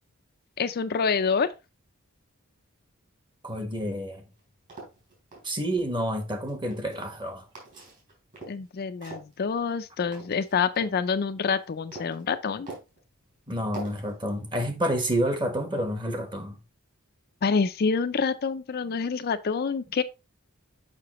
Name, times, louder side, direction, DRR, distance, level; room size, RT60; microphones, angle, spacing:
voice 1, 0.6-1.5 8.5-12.7 17.4-20.0, left 5 dB, 45° left, 0.4 m, -27 dB
voice 2, 3.4-4.2 5.4-7.4 13.5-16.6, equal, 20° right, 1.2 m, -29 dB
sound 1, 4.3-5.4 6.3-7.2 7.5-8.7 9.0-11.0 11.4-12.2 12.7-13.0 13.7-14.1, right 2 dB, 40° right, 3.6 m, -43 dB
6.8 x 5.7 x 3.0 m
head